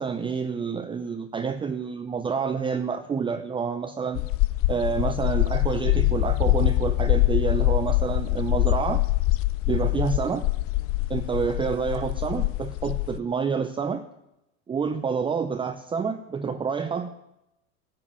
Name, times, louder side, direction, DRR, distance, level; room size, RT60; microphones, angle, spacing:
voice 1, 0.0-4.2 4.7-9.1 9.7-10.5 11.1-14.1 14.7-17.3, right 6 dB, 15° right, 8 dB, 0.6 m, -28 dB
sound 1, 4.1-13.2, left 19 dB, 40° left, 0.4 m, -24 dB
12.5 x 7.6 x 9.9 m, 0.89 s
supercardioid pair, 110°, 35 cm